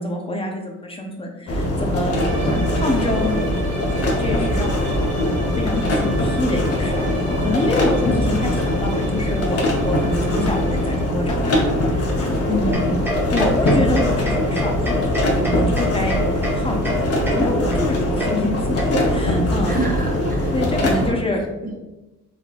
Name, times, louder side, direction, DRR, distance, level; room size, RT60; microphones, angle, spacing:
voice 1, 0.0-2.2 2.5-3.4 4.2-12.9 13.3-16.2 16.5-19.8 20.5-21.4, left 2 dB, 20° left, 1 dB, 0.6 m, -26 dB
sound 1, 1.5-21.1, left 1 dB, 50° left, 0.8 m, -21 dB
sound 2, 2.1-11.3, right 1 dB, 80° right, 1.2 m, -35 dB
voice 2, 2.3-2.7 12.8-13.1 19.7-21.8, right 4 dB, 30° right, 2 dB, 0.4 m, -30 dB
sound 3, 12.7-19.3, left 1 dB, 5° right, 0.8 m, -28 dB
3.7 x 3.2 x 2.3 m, 1.0 s
cardioid pair, 90°, 30 cm